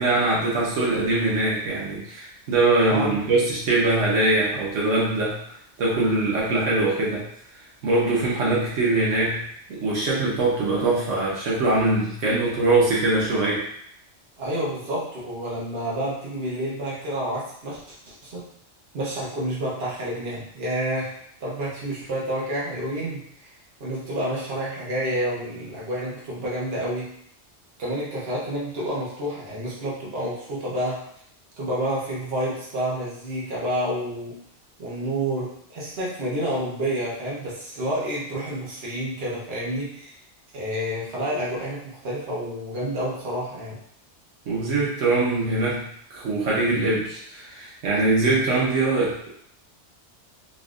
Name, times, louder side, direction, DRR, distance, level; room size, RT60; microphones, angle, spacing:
voice 1, 0.0-7.3 7.8-9.4 9.7-13.7 44.5-45.8 46.1-49.3, right 2 dB, 90° right, -5 dB, 1.3 m, -22 dB
voice 2, 14.4-18.5 18.9-23.5 23.8-27.2 27.8-31.0 31.6-34.4 34.8-40.1 40.5-43.8, right 1 dB, 55° right, -6 dB, 1.2 m, -29 dB
3.9 x 2.5 x 2.4 m, 0.67 s
omnidirectional pair, 1.2 m